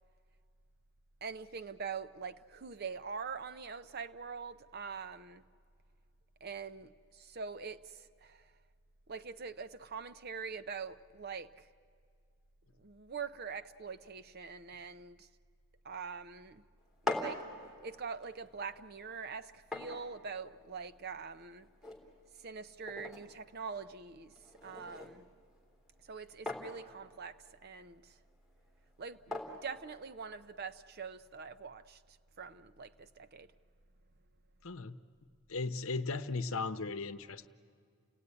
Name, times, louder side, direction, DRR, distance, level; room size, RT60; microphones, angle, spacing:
voice 1, 1.2-5.4 6.4-8.5 9.1-11.7 12.8-15.3 15.8-16.6 17.0-17.4 17.8-21.7 22.4-24.3 24.6-25.2 26.0-28.2 29.0-33.5, right 5 dB, 45° right, 0.6 m, -44 dB
sound 1, 16.8-30.7, left 2 dB, ahead, 3.2 m, -45 dB
voice 2, 34.6-35.0 35.5-37.5, left 3 dB, 65° left, 0.9 m, -37 dB
29.5 x 17.0 x 9.7 m
head